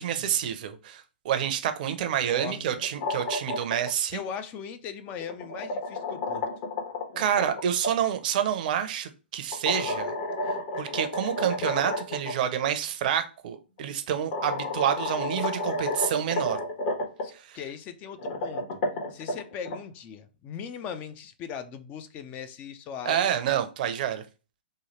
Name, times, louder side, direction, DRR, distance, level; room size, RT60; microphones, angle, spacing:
voice 1, 0.0-4.2 7.2-10.1 10.8-16.6 17.3-17.6 23.1-24.2, right 9 dB, 50° right, 0.6 m, -28 dB
voice 2, 2.0-2.8 4.1-6.5 17.2-18.8 19.1-23.3, left 7 dB, 30° left, 0.4 m, -39 dB
sound 1, 2.8-3.9 5.1-7.9 9.5-12.3 12.6-12.7 13.8-13.9 14.3-17.2 18.1-19.8, left 2 dB, 45° left, 1.1 m, -31 dB
3.1 x 2.3 x 4.3 m
hypercardioid pair, 125°, 6 cm